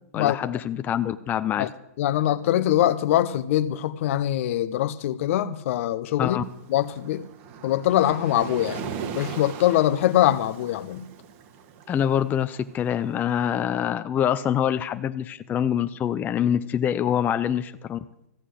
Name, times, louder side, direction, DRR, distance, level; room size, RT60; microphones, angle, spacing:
voice 1, 0.1-1.7 6.2-6.4 11.9-18.0, left 9 dB, 20° left, 0.5 m, -25 dB
voice 2, 2.0-6.4 6.7-7.2 7.6-11.1, left 12 dB, 55° left, 0.8 m, -23 dB
Waves surf, 6.4-13.5, right 7 dB, 45° right, 1.5 m, -39 dB
14.5 x 8.2 x 7.8 m
hypercardioid pair, 135°, 9 cm